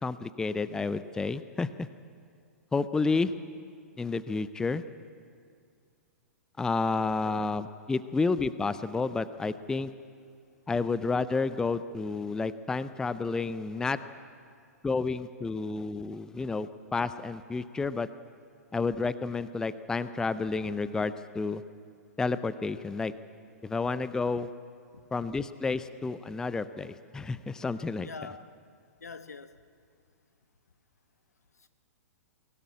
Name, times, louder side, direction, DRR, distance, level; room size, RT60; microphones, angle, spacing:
voice 1, 0.0-1.9 2.7-3.3 4.0-4.8 6.6-9.9 10.7-14.0 14.8-18.1 18.7-21.6 22.2-23.1 23.6-24.5 25.1-28.1, left 4 dB, 5° left, 14 dB, 0.5 m, -30 dB
voice 2, 28.0-28.5 29.0-29.6 31.6-31.7, left 4 dB, 75° left, 11 dB, 1.1 m, -44 dB
23.5 x 17.5 x 8.5 m, 2.3 s
figure-of-eight pair, 110°, 9 cm